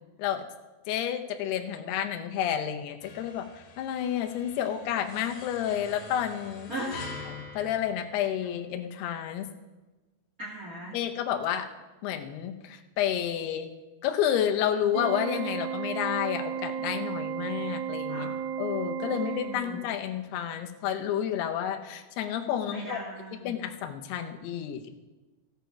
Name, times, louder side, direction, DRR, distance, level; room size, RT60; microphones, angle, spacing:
voice 1, 0.9-3.5 3.8-6.7 7.3-9.5 10.9-11.7 12.0-13.7 14.0-18.3 18.6-23.0 23.4-24.9, left 10 dB, 80° left, 6 dB, 2.8 m, -30 dB
sound 1, 3.0-8.8, left 3 dB, 60° left, 2.9 m, -45 dB
voice 2, 6.7-7.0 10.4-11.0 18.1-18.4 19.0-19.8 22.6-23.6, right 1 dB, 50° right, -4 dB, 1.0 m, -38 dB
Organ, 14.9-20.0, right 8 dB, 75° right, 2.3 m, -34 dB
16.0 x 7.9 x 4.7 m, 1.2 s
omnidirectional pair, 4.8 m